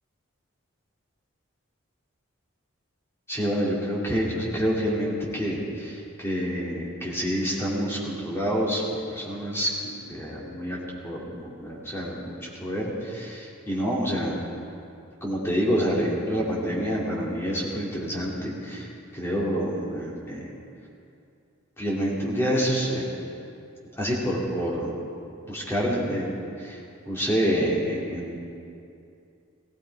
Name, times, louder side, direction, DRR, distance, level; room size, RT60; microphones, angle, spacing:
voice 1, 3.3-8.8 9.1-9.7 10.1-14.4 15.2-18.9 19.1-20.5 21.8-23.1 24.0-24.9 25.4-26.8 27.1-28.4, equal, 10° left, -5 dB, 2.6 m, -27 dB
17.5 x 15.5 x 4.7 m, 2.6 s
head